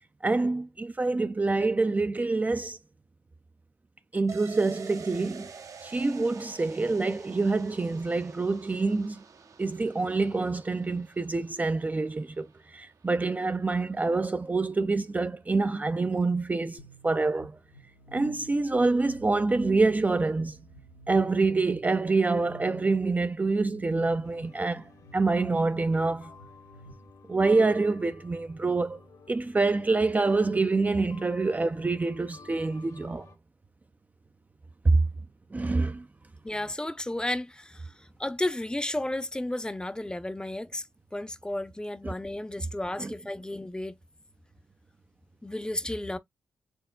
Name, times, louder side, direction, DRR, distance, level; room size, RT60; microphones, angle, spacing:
voice 1, 0.2-2.8 4.1-5.5 5.8-9.2 9.6-17.6 18.1-20.6 21.1-24.8 25.1-26.3 27.3-29.0 29.3-33.3 34.8-35.0 35.5-36.0 42.0-42.1 43.0-43.1, right 3 dB, 25° right, 0.4 m, -26 dB
sound 1, 4.3-13.7 14.0-14.1, right 5 dB, 60° right, 0.8 m, -49 dB
sound 2, 16.8-26.9, right 3 dB, 85° left, 1.1 m, -52 dB
sound 3, 24.2-33.4, left 3 dB, 65° left, 1.4 m, -53 dB
voice 2, 36.4-37.8 38.2-40.8 41.1-44.0 45.4-46.2, left 1 dB, 15° left, 0.7 m, -33 dB
4.4 x 3.5 x 2.3 m
supercardioid pair, 45°, 6 cm